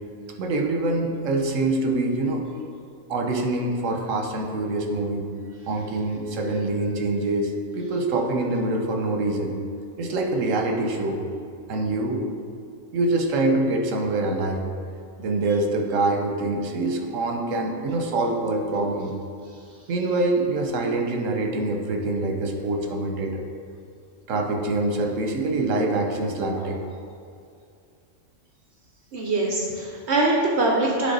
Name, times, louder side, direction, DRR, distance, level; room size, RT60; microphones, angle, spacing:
voice 1, 0.4-2.4 3.1-5.2 5.7-9.5 10.0-11.2 11.7-12.2 12.9-14.7 15.2-19.1 19.9-23.5 24.3-26.8, right 2 dB, 80° right, 3 dB, 1.2 m, -25 dB
voice 2, 29.1-31.1, right 2 dB, 65° right, -1 dB, 1.0 m, -23 dB
9.4 x 3.4 x 3.9 m, 2.4 s
omnidirectional pair, 1.3 m